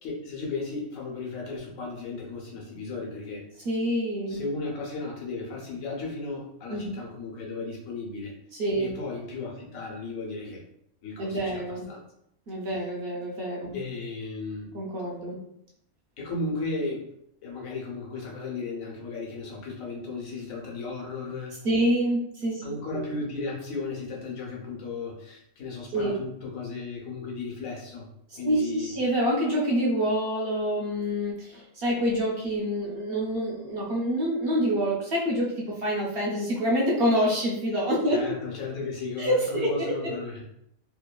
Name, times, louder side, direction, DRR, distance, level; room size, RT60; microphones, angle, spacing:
voice 1, 0.0-3.4 4.3-8.3 8.8-10.6 11.0-12.0 12.7-12.9 13.7-14.7 16.2-17.0 17.4-21.5 22.6-28.1 28.3-28.9 38.1-40.4, left 3 dB, 85° left, -2 dB, 1.1 m, -35 dB
voice 2, 3.6-4.4 6.7-6.9 8.5-8.9 11.2-11.8 12.5-13.8 14.7-15.4 21.6-22.6 22.9-23.0 25.9-26.2 28.3-38.2 39.2-40.2, equal, 60° right, -3 dB, 0.7 m, -27 dB
3.0 x 2.2 x 2.2 m, 0.76 s
omnidirectional pair, 1.4 m